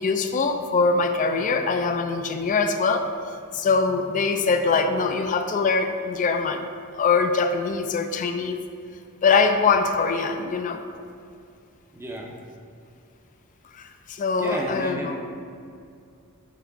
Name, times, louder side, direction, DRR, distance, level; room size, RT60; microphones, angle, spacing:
voice 1, 0.0-3.0 3.5-6.7 6.9-8.6 9.2-10.8 13.8-15.1, left 4 dB, 35° left, 6 dB, 0.3 m, -23 dB
voice 2, 11.9-12.4 14.4-15.2, equal, 10° right, 0 dB, 0.6 m, -32 dB
5.8 x 3.6 x 4.6 m, 2.4 s
head